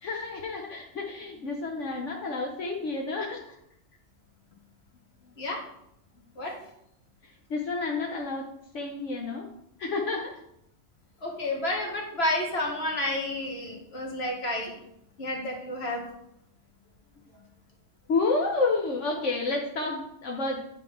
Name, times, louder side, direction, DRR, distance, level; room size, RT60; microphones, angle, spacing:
voice 1, 0.0-3.6 5.2-5.3 7.2-8.5 8.7-9.5 9.8-10.4 18.1-20.6, left 3 dB, 70° left, 1 dB, 1.3 m, -30 dB
voice 2, 11.2-14.7 15.2-16.0, left 1 dB, 55° left, 0 dB, 2.0 m, -30 dB
9.2 x 4.0 x 5.8 m, 0.77 s
omnidirectional pair, 1.3 m